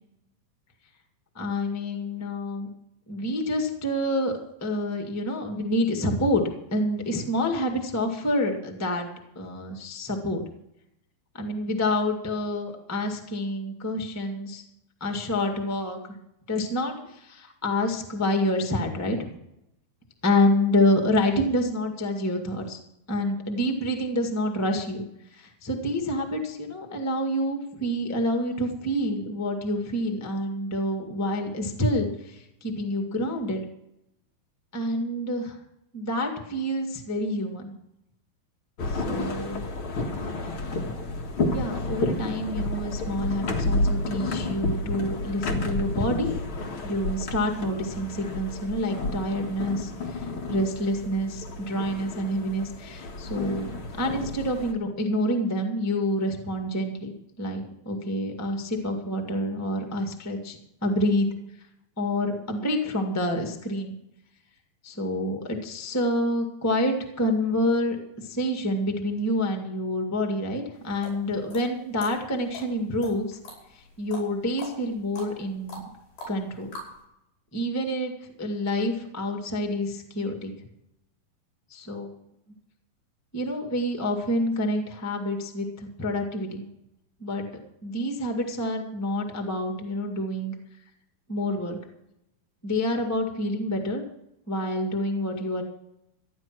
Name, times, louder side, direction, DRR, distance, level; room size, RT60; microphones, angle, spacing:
voice 1, 1.3-2.7 3.1-4.3 4.6-6.4 6.7-9.1 9.3-10.4 11.3-14.6 15.0-16.0 16.5-19.3 20.2-22.8 23.1-25.0 25.3-33.6 34.7-35.6 35.9-37.7 38.9-39.6 41.5-46.3 46.8-53.7 54.0-57.1 57.4-61.3 62.0-64.0 64.8-68.0 68.2-73.4 74.0-75.8 76.3-76.7 77.5-78.1 78.4-80.5 81.7-82.1 83.3-86.6 87.2-87.4 87.8-90.5 91.3-91.8 92.6-94.0 94.5-95.6, left 1 dB, 10° left, 3 dB, 0.9 m, -27 dB
sound 1, 38.8-54.7, left 2 dB, 45° left, 2.0 m, -31 dB
sound 2, 70.8-77.0, left 1 dB, 65° left, 6.9 m, -43 dB
14.5 x 10.5 x 6.1 m, 0.82 s
omnidirectional pair, 4.2 m